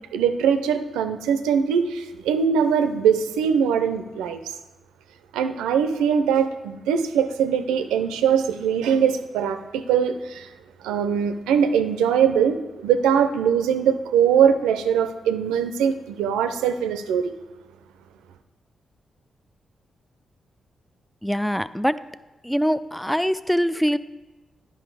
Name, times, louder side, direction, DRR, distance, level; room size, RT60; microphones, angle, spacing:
voice 1, 0.1-4.5 5.3-10.5 10.8-17.3, right 7 dB, 85° right, 9 dB, 0.5 m, -22 dB
voice 2, 21.2-22.0 22.4-24.0, equal, 5° left, 15 dB, 0.4 m, -23 dB
10.0 x 5.5 x 4.7 m, 1.1 s
hypercardioid pair, 40°, 0 cm